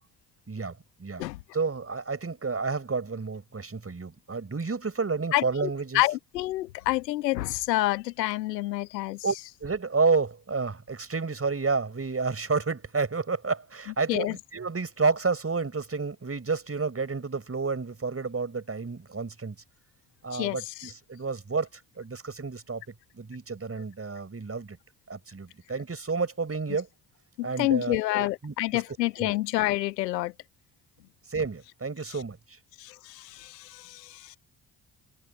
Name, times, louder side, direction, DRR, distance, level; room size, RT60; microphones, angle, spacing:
voice 1, 0.5-1.3 1.5-6.0 9.2-9.3 9.6-19.6 20.2-22.8 23.1-24.8 25.1-26.9 27.4-28.8 29.2-29.3 31.3-32.6, right 4 dB, 30° right, 6.5 m, -30 dB
voice 2, 5.3-9.2 14.1-14.4 20.3-20.9 27.4-30.3 32.8-34.4, left 17 dB, 80° left, 1.3 m, -28 dB
figure-of-eight pair, 45°, 49 cm